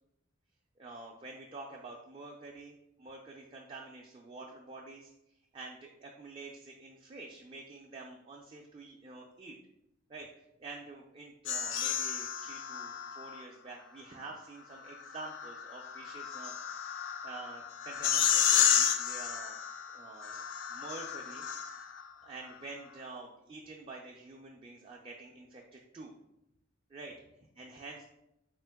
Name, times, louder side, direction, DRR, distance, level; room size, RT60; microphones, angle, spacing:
voice 1, 0.8-5.1 5.5-9.6 10.1-16.5 16.8-16.9 17.2-19.5 19.9-20.4 20.7-21.5 22.2-26.1 26.9-27.1 27.6-28.0, right 3 dB, 25° right, -1 dB, 0.3 m, -48 dB
sound 1, 11.5-13.4 14.9-22.1, left 8 dB, 65° left, 0.3 m, -32 dB
3.7 x 2.8 x 3.4 m, 0.86 s
head